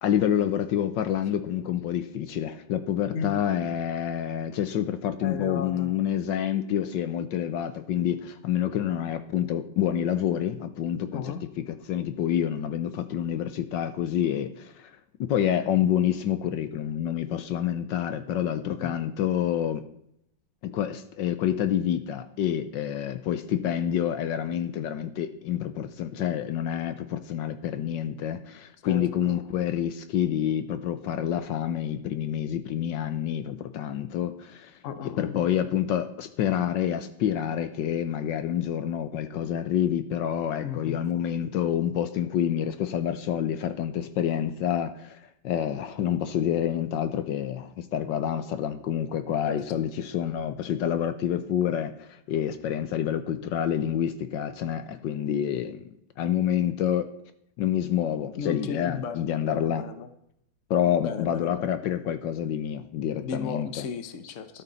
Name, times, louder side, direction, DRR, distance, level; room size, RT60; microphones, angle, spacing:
voice 1, 0.0-14.9 15.2-19.8 20.6-34.8 35.2-57.1 57.6-59.8 60.7-63.9 64.5-64.6, left 10 dB, 75° left, 10 dB, 1.4 m, -28 dB
voice 2, 3.1-3.4 5.2-5.9 11.1-11.4 18.7-18.9 28.8-29.4 34.8-35.5 40.6-41.0 49.5-49.8 58.4-60.1 61.0-61.7 63.2-64.6, left 6 dB, 50° left, 10 dB, 1.1 m, -35 dB
13.0 x 12.5 x 4.0 m, 0.77 s
omnidirectional pair, 2.1 m